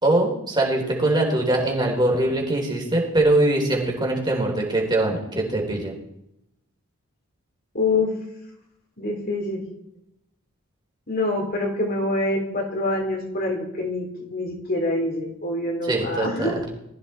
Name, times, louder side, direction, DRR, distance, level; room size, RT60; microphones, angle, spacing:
voice 1, 0.0-5.9 15.8-16.6, right 2 dB, 20° right, -1 dB, 3.9 m, -22 dB
voice 2, 7.7-8.1 9.0-9.7 11.1-16.6, left 2 dB, 45° left, 0 dB, 3.9 m, -25 dB
20.5 x 14.5 x 4.4 m, 0.83 s
head